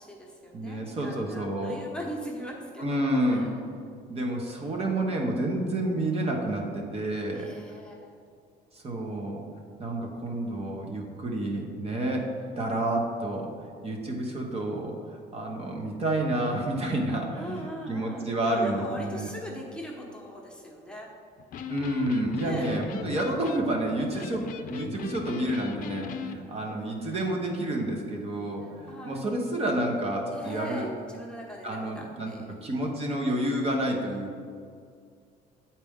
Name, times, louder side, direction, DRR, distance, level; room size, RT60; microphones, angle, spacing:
voice 1, 0.0-3.5 7.3-8.2 12.4-12.6 17.3-21.1 22.4-22.7 23.0-23.2 24.1-24.2 27.1-27.2 28.6-29.2 30.2-32.9 33.3-33.6, equal, 5° left, -2 dB, 1.1 m, -41 dB
voice 2, 0.5-1.8 2.8-3.5 4.1-7.5 8.7-9.4 9.8-13.5 13.8-19.3 21.7-24.4 24.7-30.9 31.6-32.3 32.6-34.4, right 1 dB, 35° right, 0 dB, 1.0 m, -29 dB
Electric guitar, 21.4-26.4, left 6 dB, 55° left, 0.5 m, -39 dB
8.3 x 4.3 x 3.6 m, 2.2 s
cardioid pair, 110°, 17 cm